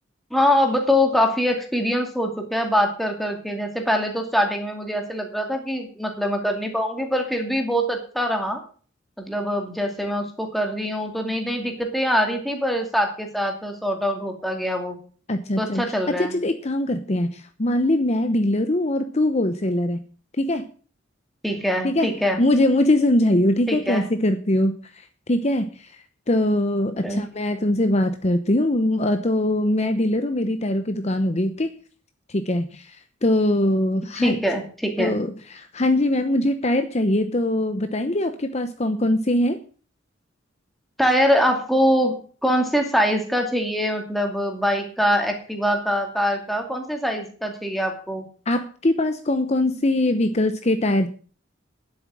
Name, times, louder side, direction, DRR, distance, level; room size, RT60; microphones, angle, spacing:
voice 1, 0.3-8.6 9.2-15.0 15.6-16.4 21.4-22.4 23.7-24.0 27.0-27.2 34.2-35.1 41.0-48.2, equal, ahead, 3 dB, 2.5 m, -23 dB
voice 2, 15.3-20.0 20.4-20.7 21.8-25.9 26.3-31.7 32.3-34.4 35.0-39.6 48.5-51.1, left 1 dB, 35° left, 8 dB, 0.9 m, -22 dB
11.0 x 8.1 x 7.6 m, 0.41 s
head